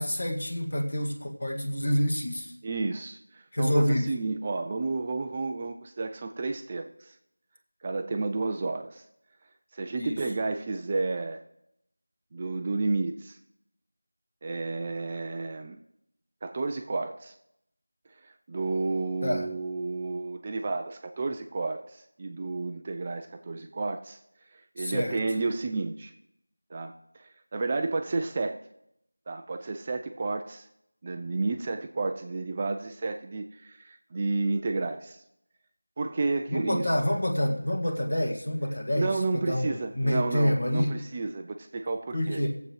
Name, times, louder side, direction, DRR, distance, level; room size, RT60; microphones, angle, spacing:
voice 1, 0.0-2.5 3.5-4.1 10.0-10.3 19.2-19.5 24.8-25.2 36.5-40.9 42.1-42.5, equal, 50° left, 2 dB, 1.8 m, -27 dB
voice 2, 2.6-7.1 7.8-9.0 9.7-11.4 12.3-13.4 14.4-15.8 16.4-17.3 18.2-24.2 24.5-26.1 26.7-26.9 27.2-28.6 29.3-30.7 31.0-35.2 36.0-36.9 38.9-42.4, right 3 dB, 15° right, 6 dB, 0.3 m, -31 dB
20.5 x 7.7 x 3.2 m, 0.79 s
figure-of-eight pair, 175°, 0 cm